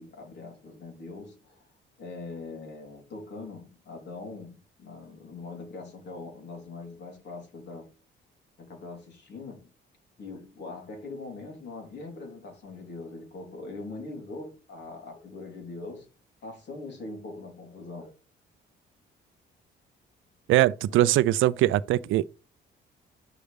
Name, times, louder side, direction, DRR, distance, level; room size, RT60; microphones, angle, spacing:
voice 1, 0.0-1.7 2.0-7.9 8.6-9.7 10.2-16.1 16.4-18.1 20.9-21.1, left 3 dB, 60° left, 3.5 m, -42 dB
voice 2, 20.5-22.2, right 14 dB, 80° right, 0.5 m, -22 dB
9.8 x 6.4 x 3.4 m
cardioid pair, 90°, 20 cm